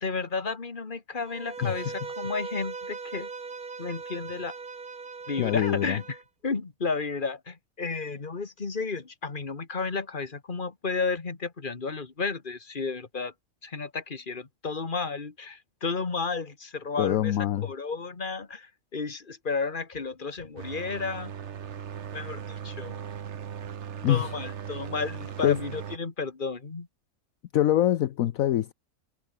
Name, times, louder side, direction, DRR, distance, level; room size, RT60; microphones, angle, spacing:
voice 1, 0.0-3.3 3.8-4.5 5.3-6.2 6.4-13.3 13.6-17.3 17.6-21.3 22.1-23.0 24.1-26.9, left 4 dB, 35° left, 2.0 m, -32 dB
Bowed string instrument, 1.2-6.2, right 4 dB, 85° right, 3.0 m, -39 dB
voice 2, 1.6-1.9 5.4-6.0 17.0-17.7 24.0-24.3 25.4-25.6 27.5-28.7, left 12 dB, 70° left, 1.1 m, -24 dB
sound 1, 20.6-26.0, right 8 dB, 55° right, 1.2 m, -38 dB
omnidirectional pair, 1.5 m